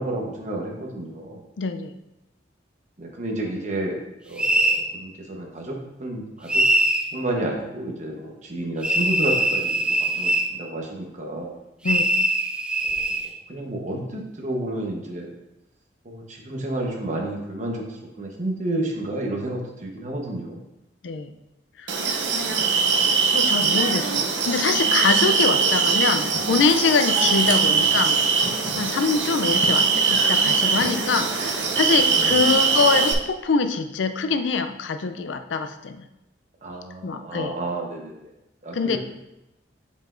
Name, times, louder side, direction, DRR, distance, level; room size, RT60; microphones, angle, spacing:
voice 1, 0.0-1.4 3.0-6.6 7.1-11.6 12.9-15.3 16.0-20.6 22.5-22.8 27.2-27.5 32.1-32.4 36.6-38.3 38.6-39.0, right 1 dB, 40° right, 0 dB, 1.0 m, -31 dB
voice 2, 1.6-1.9 11.8-12.0 21.0-21.3 21.8-22.1 23.3-28.5 28.8-36.0 37.0-37.5 38.7-39.0, left 4 dB, 80° left, 9 dB, 0.4 m, -24 dB
sound 1, 4.4-4.8 6.5-7.1 8.8-10.5 11.8-13.2, right 1 dB, 5° right, 0.3 m, -22 dB
sound 2, 21.9-33.1, right 5 dB, 75° right, 0.7 m, -21 dB
7.4 x 5.2 x 2.5 m, 0.92 s
head